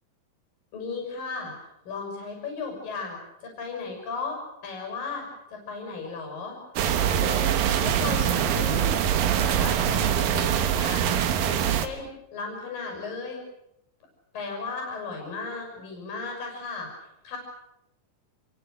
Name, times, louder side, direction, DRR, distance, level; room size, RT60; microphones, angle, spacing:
voice 1, 0.7-1.5 1.9-5.2 5.5-6.6 6.8-9.0 9.4-11.1 11.4-13.4 14.3-16.9 17.2-17.4, left 4 dB, 90° left, 1 dB, 8.0 m, -35 dB
sound 1, 6.8-11.9, right 9 dB, 85° right, 3.1 m, -24 dB
27.5 x 24.0 x 6.7 m, 0.84 s
omnidirectional pair, 3.9 m